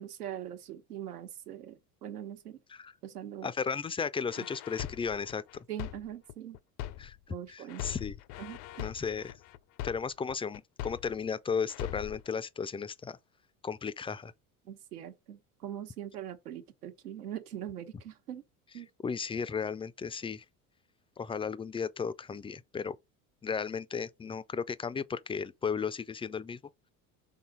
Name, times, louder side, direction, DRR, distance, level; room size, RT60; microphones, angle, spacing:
voice 1, 0.0-2.6 3.0-3.5 4.4-4.5 5.7-6.6 7.3-7.8 8.4-8.9 14.7-18.4 18.7-18.9, right 11 dB, 90° right, 1.2 m, -42 dB
voice 2, 3.4-5.7 7.0-7.2 7.5-8.1 8.8-9.3 9.8-13.2 13.6-14.3 19.0-20.4 21.2-23.0 23.4-26.6, left 6 dB, 15° left, 0.4 m, -35 dB
sound 1, 4.3-7.3 7.7-11.3 11.7-12.3, left 13 dB, 60° left, 0.7 m, -41 dB
5.6 x 3.8 x 4.7 m
hypercardioid pair, 75°, 44 cm